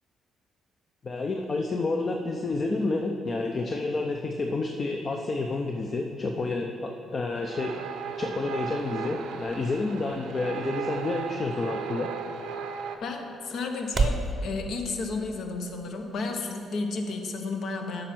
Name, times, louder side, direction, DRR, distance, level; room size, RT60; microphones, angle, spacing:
voice 1, 1.0-12.1, left 3 dB, 40° left, 3 dB, 0.6 m, -29 dB
sound 1, 7.4-13.0, right 7 dB, 90° right, 0.6 m, -36 dB
sound 2, 8.0-14.3, right 3 dB, 35° right, 0.6 m, -35 dB
voice 2, 13.0-18.1, left 3 dB, 65° left, 4 dB, 1.0 m, -32 dB
8.8 x 5.2 x 5.9 m, 2.5 s
cardioid pair, 90°, 0 cm